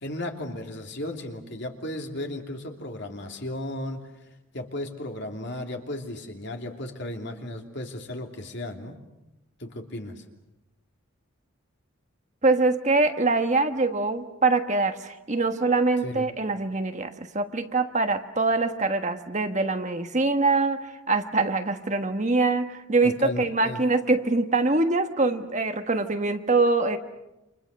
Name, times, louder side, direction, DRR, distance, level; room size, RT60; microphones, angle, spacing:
voice 1, 0.0-4.0 4.5-8.9 9.6-10.2 16.0-16.3 23.0-23.8, left 1 dB, 55° left, 3 dB, 3.0 m, -35 dB
voice 2, 12.4-27.0, right 3 dB, 35° right, 7 dB, 1.3 m, -24 dB
29.5 x 27.0 x 6.6 m, 0.95 s
head